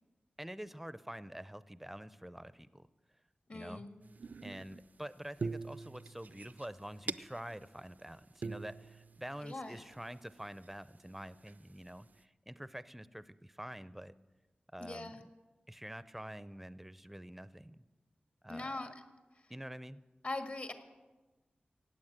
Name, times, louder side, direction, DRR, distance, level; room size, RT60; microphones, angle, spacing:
voice 1, 0.4-2.9 3.5-3.9 4.4-14.1 14.7-15.2 15.7-17.8 18.4-18.8 19.5-20.0, right 1 dB, 5° right, 15 dB, 0.5 m, -47 dB
voice 2, 3.5-3.9 9.4-9.8 14.8-15.2 18.5-18.9 19.3-19.4 20.2-20.7, left 2 dB, 50° left, 6 dB, 1.7 m, -41 dB
sound 1, 4.0-4.9 5.4-7.6 8.0-8.1 8.4-10.0 10.6-10.7 11.4-11.9, right 4 dB, 60° right, 0.4 m, -43 dB
16.5 x 9.2 x 7.9 m, 1.2 s
wide cardioid pair, 85°, 3 cm